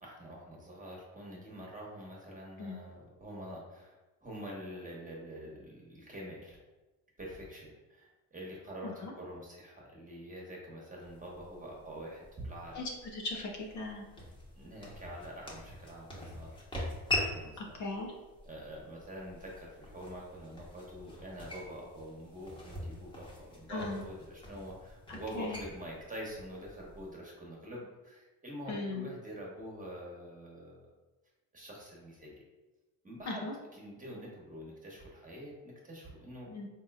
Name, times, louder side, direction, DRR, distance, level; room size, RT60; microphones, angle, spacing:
voice 1, 0.0-4.0 4.2-6.6 7.2-12.8 14.6-16.5 17.1-17.8 18.4-30.9 31.5-32.4 33.0-36.5, equal, 20° right, -3 dB, 1.2 m, -46 dB
sound 1, 11.0-27.1, left 2 dB, 15° left, 1.1 m, -43 dB
voice 2, 12.8-14.0 17.6-18.1 23.7-24.0 25.1-25.6 28.7-29.1 33.3-33.5 36.5-36.7, left 3 dB, 50° left, 0 dB, 0.7 m, -38 dB
3.6 x 2.8 x 2.4 m, 1.1 s
supercardioid pair, 70°, 38 cm